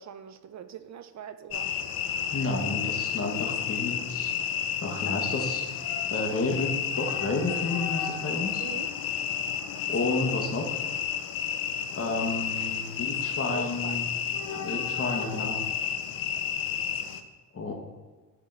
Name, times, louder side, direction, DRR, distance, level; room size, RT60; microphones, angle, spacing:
voice 1, 0.0-1.8 8.6-8.9 13.5-14.7, right 8 dB, 40° right, 11 dB, 0.5 m, -43 dB
sound 1, 1.5-17.2, left 8 dB, 50° left, 0.7 m, -31 dB
voice 2, 2.3-4.3 4.8-5.7 6.1-8.6 9.9-10.7 11.9-14.1 14.6-15.6 17.5-17.7, left 3 dB, 30° left, 1 dB, 1.4 m, -31 dB
8.0 x 3.6 x 3.6 m, 1.3 s
hypercardioid pair, 40°, 46 cm